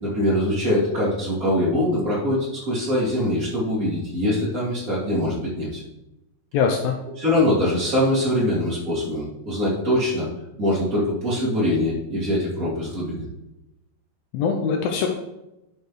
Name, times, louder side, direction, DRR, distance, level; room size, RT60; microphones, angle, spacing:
voice 1, 0.0-5.8 7.2-10.3 10.6-13.2, left 1 dB, 25° right, -6 dB, 2.6 m, -23 dB
voice 2, 6.5-7.0 14.3-15.1, left 6 dB, 75° left, 3 dB, 2.2 m, -22 dB
10.5 x 6.6 x 3.2 m, 0.91 s
omnidirectional pair, 4.6 m